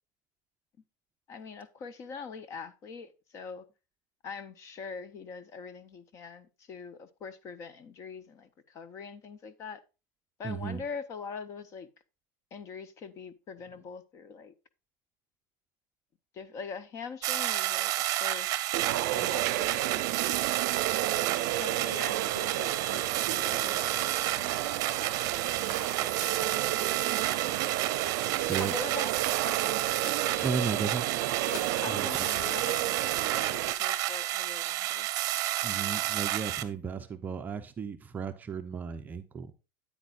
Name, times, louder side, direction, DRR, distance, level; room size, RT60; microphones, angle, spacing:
voice 1, 1.3-3.7 4.2-9.8 10.4-11.9 12.5-14.5 16.3-18.7 19.2-19.9 21.5-25.4 25.8-26.5 26.8-26.9 28.6-29.1 29.4-29.9 31.8-35.1, left 5 dB, 30° left, 0.8 m, -43 dB
voice 2, 10.4-10.8 28.5-28.8 30.4-31.0 31.9-32.3 35.6-39.5, right 5 dB, 15° right, 0.6 m, -34 dB
sound 1, 17.2-36.6, right 15 dB, 40° right, 0.9 m, -31 dB
sound 2, 18.7-33.7, right 15 dB, 65° right, 0.6 m, -33 dB
Keys jangling, 25.6-26.4 26.9-27.4 28.1-31.8 32.6-33.5, left 6 dB, 90° left, 1.6 m, -47 dB
9.2 x 8.5 x 2.4 m
cardioid pair, 175°, 10 cm